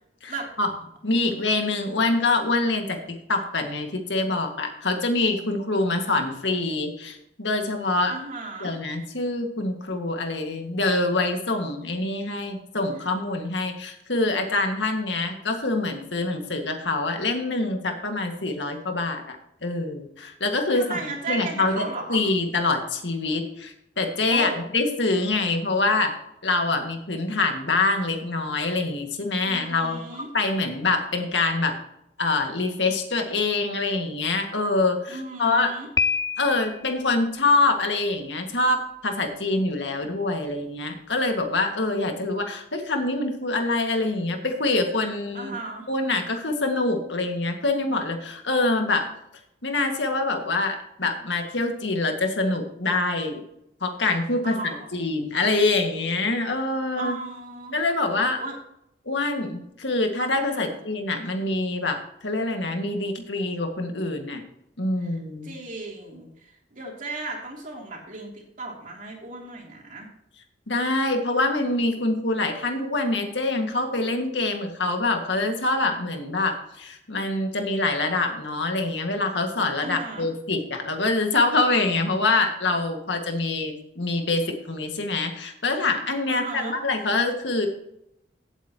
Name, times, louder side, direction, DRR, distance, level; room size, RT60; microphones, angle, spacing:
voice 1, 0.2-0.7 1.0-8.2 8.6-19.4 19.6-21.0 21.3-26.1 26.4-30.0 30.3-31.8 32.2-35.8 36.4-45.5 45.9-49.1 49.6-53.4 53.8-57.2 57.7-58.4 59.1-64.4 64.8-65.6 70.7-87.7, left 2 dB, 85° left, 4 dB, 1.9 m, -25 dB
voice 2, 8.1-8.7 20.7-22.2 24.3-24.6 29.4-30.3 35.1-35.9 45.3-45.9 54.4-55.1 56.9-57.7 58.1-58.5 60.5-60.8 65.0-65.1 65.4-70.1 79.8-80.3 86.3-86.7, right 2 dB, 45° right, -1 dB, 3.1 m, -35 dB
Piano, 36.0-36.9, left 5 dB, 20° left, 0.4 m, -26 dB
16.0 x 8.3 x 3.0 m, 0.78 s
head